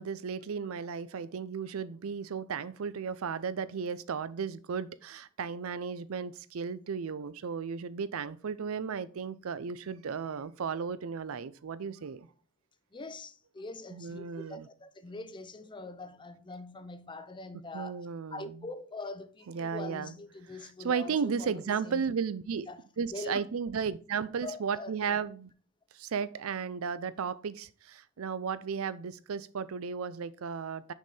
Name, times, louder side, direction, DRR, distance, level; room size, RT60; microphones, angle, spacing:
voice 1, 0.0-12.3 13.9-14.7 17.7-18.6 19.5-20.1 20.8-22.7 23.0-25.5 25.9-30.9, right 6 dB, 75° right, 0.5 m, -34 dB
voice 2, 12.9-18.0 18.3-22.1 22.7-22.8 23.1-23.4 24.4-24.9, left 3 dB, 20° left, 0.5 m, -43 dB
6.2 x 5.4 x 4.2 m
head